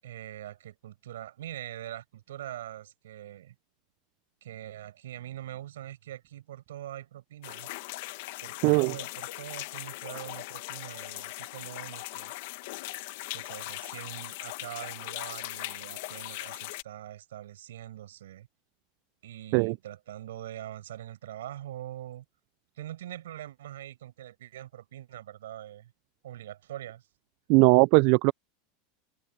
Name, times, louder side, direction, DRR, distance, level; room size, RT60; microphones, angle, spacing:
voice 1, 0.0-3.5 4.4-7.7 8.4-12.3 13.3-18.5 19.2-22.2 22.8-25.9 26.2-27.1, right 12 dB, 85° right, 6.6 m, -43 dB
sound 1, 7.4-16.8, left 20 dB, 70° left, 1.5 m, -39 dB
voice 2, 8.6-8.9 19.5-19.7 27.5-28.3, right 29 dB, 60° right, 0.3 m, -20 dB
supercardioid pair, 120°, 0 cm